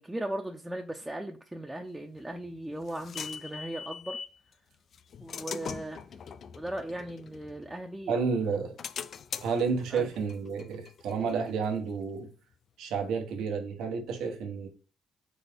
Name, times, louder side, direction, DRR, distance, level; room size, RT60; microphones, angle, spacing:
voice 1, 0.0-4.2 5.2-6.2 6.5-8.1 9.9-10.1, right 1 dB, 10° right, 0.6 m, -37 dB
sound 1, 2.2-4.4 4.9-8.0 8.4-11.9, left 7 dB, 55° left, 0.3 m, -42 dB
voice 2, 8.1-8.8 9.4-12.3 12.8-14.7, right 5 dB, 90° right, 1.0 m, -30 dB
4.1 x 3.5 x 3.4 m
cardioid pair, 90°, 0 cm